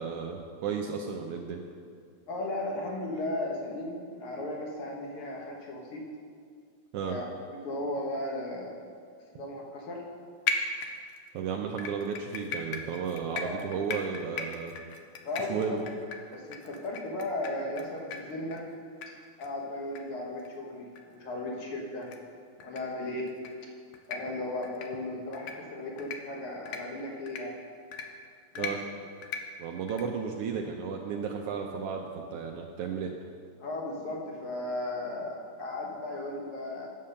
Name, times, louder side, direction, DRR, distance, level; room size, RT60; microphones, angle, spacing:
voice 1, 0.0-1.6 6.9-7.2 11.3-14.7 15.5-15.8 28.6-28.8 29.6-33.1, right 6 dB, 85° right, 2 dB, 1.3 m, -33 dB
voice 2, 2.3-6.0 7.1-8.8 9.3-10.0 13.3-13.6 15.2-15.8 16.3-18.6 19.4-22.1 22.6-23.3 24.1-27.5 28.5-28.7 33.6-36.9, left 1 dB, 55° left, -1 dB, 2.1 m, -36 dB
sound 1, 10.5-11.3 11.8-17.8 18.1-18.2 18.5-18.6 19.0-19.1 19.4-19.5 20.0-20.1 20.4-20.5 21.0-21.1 22.0-22.2 22.6-22.8 23.3-23.5 23.9-24.2 24.6-24.9 25.3-25.5 26.0-26.2 26.7-26.8 27.3-27.4 27.9-28.1 28.6-28.7 29.2-29.4 29.9-30.0, left 5 dB, 70° left, 1.6 m, -35 dB
9.6 x 7.5 x 6.6 m, 2.2 s
omnidirectional pair, 3.3 m